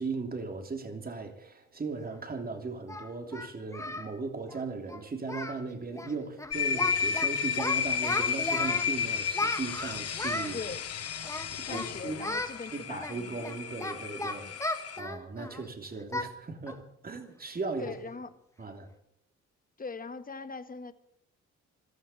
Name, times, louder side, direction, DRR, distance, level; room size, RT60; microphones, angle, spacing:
voice 1, 0.0-10.6 11.5-12.3 12.7-14.5 15.0-18.0 18.6-18.9, right 4 dB, 30° right, 5 dB, 3.0 m, -37 dB
Singing, 2.1-2.2 2.9-4.1 4.4-4.6 4.9-5.0 5.3-5.6 5.9-6.1 6.4-7.3 7.6-8.9 9.3-10.6 11.2-11.9 12.2-12.5 13.0-15.6 16.1-16.3 16.7-16.8 17.3-17.4 17.8-18.1, left 2 dB, 10° left, 1.8 m, -35 dB
sound 1, 6.5-15.0, left 7 dB, 50° left, 1.5 m, -32 dB
voice 2, 10.5-10.8 11.6-13.4 14.4-14.5 17.8-18.3 19.8-20.9, left 4 dB, 30° left, 11 dB, 1.4 m, -41 dB
14.5 x 13.0 x 7.2 m, 0.74 s
cardioid pair, 90°, 30 cm